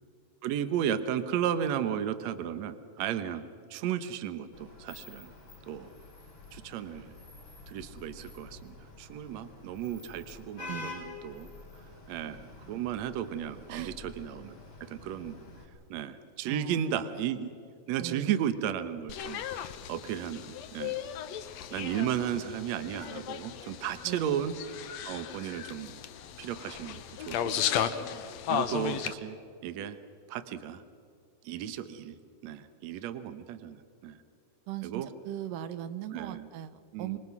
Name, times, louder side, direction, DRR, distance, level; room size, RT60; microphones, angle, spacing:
voice 1, 0.4-3.4 3.7-5.3 5.7-5.9 6.5-7.1 7.7-11.5 12.1-15.4 15.9-17.5 17.9-19.4 19.9-21.0 21.7-24.5 25.1-26.0 26.4-27.9 28.5-29.4 29.6-30.0 30.3-30.8 31.4-32.2 32.4-34.2 34.8-35.1 36.1-36.5 36.9-37.2, right 9 dB, 65° right, 12 dB, 2.2 m, -34 dB
Vehicle horn car horn honking / Traffic noise roadway noise, 4.5-15.6, left 3 dB, 45° left, 5.3 m, -48 dB
voice 2, 16.5-16.9 18.0-18.3 24.0-24.4 34.7-37.2, right 11 dB, 90° right, 13 dB, 2.5 m, -39 dB
sound 1, 19.1-29.1, left 9 dB, 65° left, 2.0 m, -35 dB
26.0 x 24.0 x 6.1 m, 2.4 s
omnidirectional pair, 3.7 m